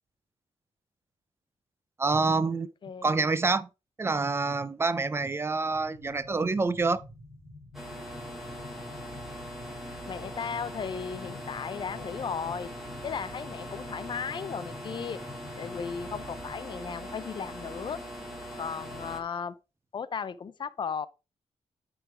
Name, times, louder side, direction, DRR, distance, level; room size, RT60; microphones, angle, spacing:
voice 1, 2.0-2.7 3.0-3.7 4.0-7.0, right 3 dB, 20° right, 0.5 m, -27 dB
voice 2, 2.8-3.2 10.1-12.7 13.0-15.2 15.6-18.0 18.6-19.6 19.9-21.1, left 6 dB, 40° left, 0.5 m, -36 dB
sound 1, 5.7-16.6, left 2 dB, 15° left, 3.0 m, -49 dB
sound 2, 7.7-19.2, equal, ahead, 2.0 m, -41 dB
9.8 x 3.8 x 4.4 m
wide cardioid pair, 155°, 12 cm